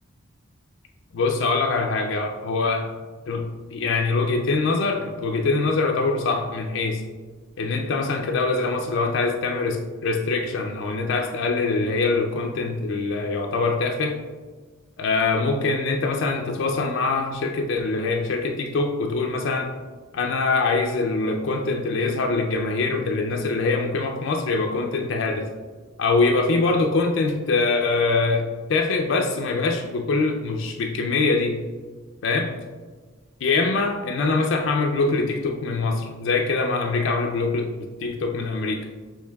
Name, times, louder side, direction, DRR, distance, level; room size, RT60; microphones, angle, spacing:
voice 1, 1.1-2.9 3.3-7.0 7.6-14.1 15.0-19.7 20.1-25.5 26.0-31.6 32.2-32.5 33.4-37.7 38.0-38.8, left 3 dB, 60° left, 2 dB, 0.4 m, -23 dB
6.3 x 3.1 x 2.3 m, 1.4 s
head